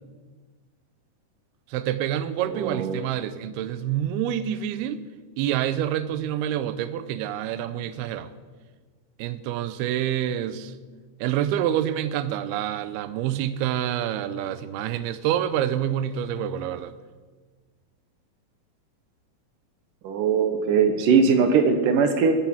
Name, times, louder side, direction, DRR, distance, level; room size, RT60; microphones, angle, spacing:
voice 1, 1.7-5.0 5.4-8.3 9.2-10.7 11.2-16.9, right 11 dB, 85° right, 14 dB, 2.7 m, -27 dB
voice 2, 2.5-3.0 20.0-22.4, right 5 dB, 70° right, 7 dB, 2.4 m, -20 dB
19.5 x 9.0 x 6.1 m, 1.4 s
omnidirectional pair, 4.4 m